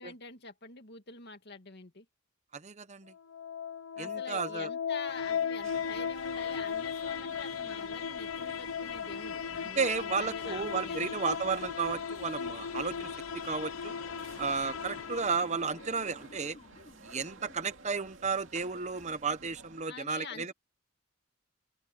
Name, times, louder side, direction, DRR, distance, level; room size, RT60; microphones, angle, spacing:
voice 1, 0.0-2.0 4.0-11.2 19.8-20.5, left 4 dB, 55° left, 2.4 m, -46 dB
voice 2, 2.5-3.1 4.0-4.7 9.8-13.1 13.4-13.9 14.4-16.6 17.0-20.5, right 5 dB, 35° right, 0.9 m, -33 dB
sound 1, 3.1-16.1, left 7 dB, 85° left, 0.7 m, -37 dB
sound 2, 5.6-19.8, right 3 dB, 65° right, 2.6 m, -54 dB
Motor vehicle (road) / Siren, 14.2-18.3, left 2 dB, 35° left, 1.2 m, -54 dB
open air
head